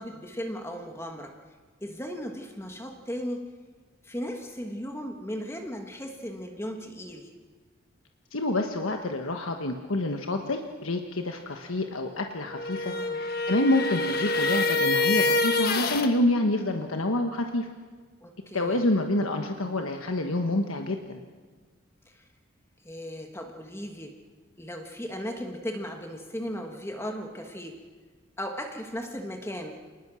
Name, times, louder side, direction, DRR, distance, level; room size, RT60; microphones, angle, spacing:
voice 1, 0.0-1.6 1.8-3.5 4.0-7.3 12.9-13.2 18.2-18.9 22.0-22.2 22.8-24.2 24.6-27.8 28.4-29.8, equal, 10° left, 4 dB, 1.5 m, -36 dB
voice 2, 8.3-12.9 13.5-17.7 18.5-21.2, left 1 dB, 85° left, 4 dB, 1.4 m, -27 dB
sound 1, 12.5-16.1, left 3 dB, 45° left, 1.4 m, -26 dB
27.5 x 20.0 x 6.3 m, 1.5 s
head